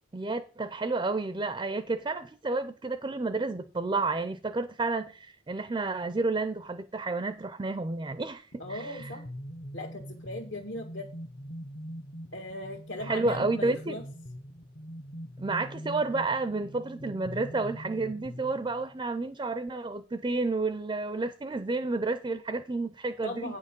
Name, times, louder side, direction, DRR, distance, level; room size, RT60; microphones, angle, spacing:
voice 1, 0.1-9.1 13.0-14.0 15.4-23.6, right 3 dB, 25° right, 0.4 m, -31 dB
sound 1, 8.5-19.0, equal, 35° left, 0.6 m, -43 dB
voice 2, 8.6-9.2 9.7-11.1 12.3-14.0 23.2-23.6, left 1 dB, 70° left, 1.6 m, -38 dB
9.0 x 6.4 x 5.2 m
head